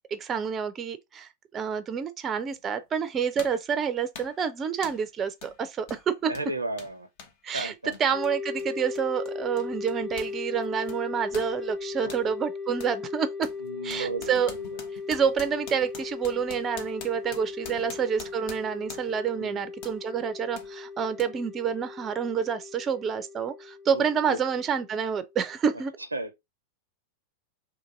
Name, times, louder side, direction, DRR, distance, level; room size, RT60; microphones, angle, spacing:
voice 1, 0.1-6.3 7.4-7.7 8.0-13.5 13.8-14.5 15.1-25.9, right 7 dB, 25° right, 0.4 m, -28 dB
sound 1, 2.5-2.6 3.4-3.7 4.1-4.4 4.8-5.1 5.4-5.6 5.8-10.4 10.6-12.3 12.8-13.0 13.4-19.3 19.8-20.0 20.6-20.7 21.2-21.3, left 5 dB, 50° left, 0.7 m, -45 dB
voice 2, 6.3-7.1 7.5-8.2 12.0-12.3 13.6-14.8 17.6-17.7 19.4-19.6 23.9-24.4 26.1-26.3, right 2 dB, 85° right, 0.4 m, -35 dB
sound 2, 8.1-25.5, left 5 dB, 20° left, 1.1 m, -38 dB
2.8 x 2.6 x 3.7 m
figure-of-eight pair, 90°, 0 cm